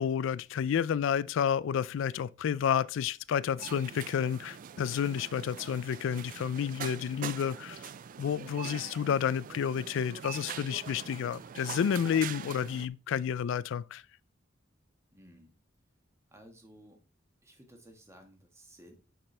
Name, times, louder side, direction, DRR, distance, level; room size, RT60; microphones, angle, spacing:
voice 1, 0.0-7.8 8.2-14.0, left 8 dB, 70° left, 0.3 m, -30 dB
sound 1, 3.6-12.9, right 8 dB, 45° right, 0.3 m, -43 dB
voice 2, 15.1-15.6 16.3-17.0 17.4-18.9, equal, 15° right, 1.4 m, -55 dB
6.5 x 5.8 x 3.3 m
head